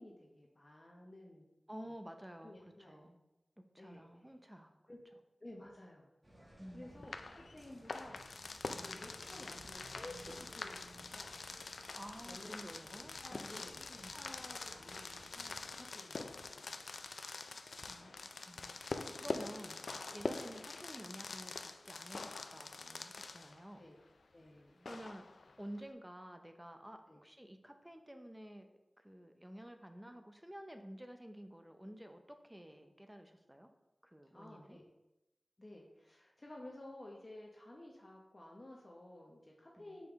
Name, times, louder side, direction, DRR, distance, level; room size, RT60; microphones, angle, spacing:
voice 1, 0.0-1.4 1.8-1.9 2.4-3.1 3.8-4.1 4.9-5.0 5.4-6.1 6.7-8.2 8.7-11.3 12.3-12.6 13.2-13.8 14.1-17.0 19.3-19.4 23.7-24.0 24.3-24.9 27.1-27.2 34.3-34.9 35.6-40.1, left 1 dB, 35° left, -1 dB, 0.8 m, -54 dB
voice 2, 1.7-3.2 3.7-4.9 6.6-7.1 11.9-14.2 17.9-23.8 24.8-25.3 25.6-33.7 34.0-34.8 39.8-40.0, equal, 10° right, 6 dB, 0.6 m, -52 dB
sound 1, 6.2-15.8, right 1 dB, 25° right, 1.4 m, -59 dB
sound 2, 7.0-23.7 24.9-25.8, left 3 dB, 85° left, 0.3 m, -45 dB
5.5 x 4.8 x 3.5 m, 0.95 s
wide cardioid pair, 70°, 0 cm